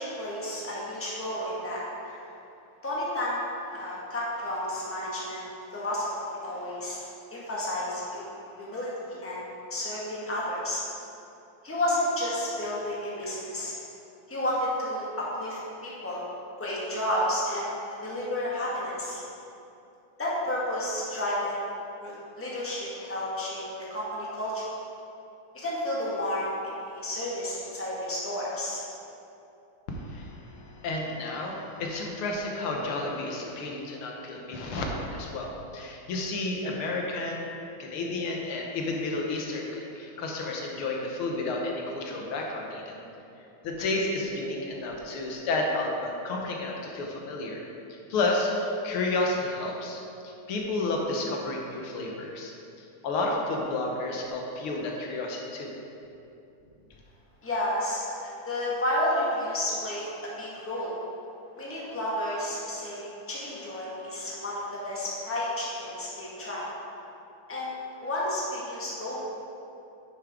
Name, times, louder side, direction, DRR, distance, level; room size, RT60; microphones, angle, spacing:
voice 1, 0.0-2.2 2.8-7.0 7.3-9.4 9.7-10.8 11.6-13.7 14.3-16.3 16.6-17.7 18.0-19.2 20.2-21.7 22.0-24.6 25.5-28.8 57.4-60.9 61.5-66.7 67.5-67.7 68.0-69.2, left 1 dB, 5° left, -6 dB, 1.4 m, -31 dB
voice 2, 29.9-37.5 37.8-43.0 43.6-47.6 48.1-52.5 53.0-55.7, left 2 dB, 85° left, 0 dB, 1.9 m, -31 dB
9.6 x 6.9 x 3.7 m, 2.7 s
omnidirectional pair, 2.3 m